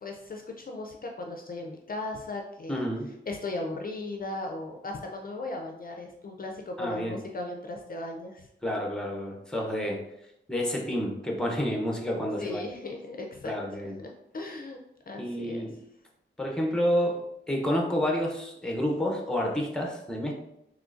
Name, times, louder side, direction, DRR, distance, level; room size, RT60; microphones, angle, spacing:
voice 1, 0.0-2.8 3.3-8.5 12.4-13.5 13.8-14.8 15.1-15.7, left 2 dB, 45° left, 2 dB, 0.4 m, -37 dB
voice 2, 2.7-3.1 6.8-7.2 8.6-10.0 10.5-12.6 13.4-14.0 15.2-15.8 16.4-20.3, equal, 5° left, 0 dB, 0.7 m, -29 dB
3.6 x 3.1 x 2.5 m, 0.82 s
wide cardioid pair, 90°, 20 cm